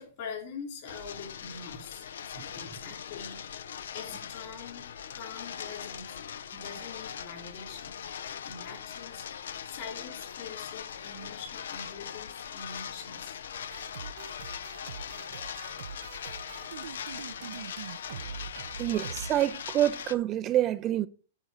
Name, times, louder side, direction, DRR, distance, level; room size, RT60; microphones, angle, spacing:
voice 1, 0.0-3.4 3.9-6.2 6.5-7.9 8.4-9.3 9.6-13.4 14.4-14.5, left 5 dB, 50° left, 3.6 m, -44 dB
sound 1, 0.9-20.2, left 8 dB, 85° left, 0.6 m, -41 dB
sound 2, 13.7-19.3, right 7 dB, 80° right, 0.6 m, -43 dB
voice 2, 18.8-21.1, right 12 dB, 30° right, 0.4 m, -27 dB
8.9 x 4.0 x 6.6 m
hypercardioid pair, 150°, 0 cm